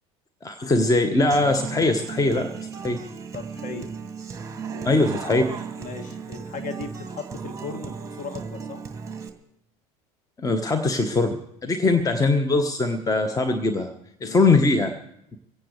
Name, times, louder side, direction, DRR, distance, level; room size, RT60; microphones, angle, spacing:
voice 1, 0.4-2.5 2.8-3.0 4.8-5.4 10.4-13.9 14.2-14.9, left 2 dB, 15° left, 7 dB, 1.3 m, -21 dB
Human voice / Acoustic guitar, 1.3-9.3, right 6 dB, 15° right, 2.2 m, -36 dB
voice 2, 3.3-3.9 4.7-5.3 5.8-8.8 14.2-14.4, left 4 dB, 40° left, 5 dB, 2.2 m, -37 dB
24.0 x 16.5 x 3.3 m, 0.78 s
figure-of-eight pair, 70°, 20 cm